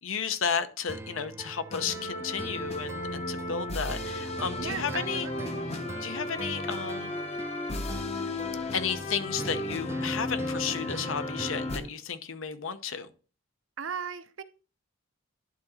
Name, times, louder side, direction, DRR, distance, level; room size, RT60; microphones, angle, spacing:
voice 1, 0.0-5.3 6.0-7.1 8.7-13.1, left 6 dB, 75° left, 0.7 m, -33 dB
sound 1, 0.9-11.9, right 1 dB, 15° right, 0.4 m, -41 dB
sound 2, 1.7-11.8, left 2 dB, 30° left, 0.7 m, -35 dB
voice 2, 4.6-5.6 13.8-14.4, right 7 dB, 65° right, 0.7 m, -37 dB
11.0 x 3.9 x 4.2 m
head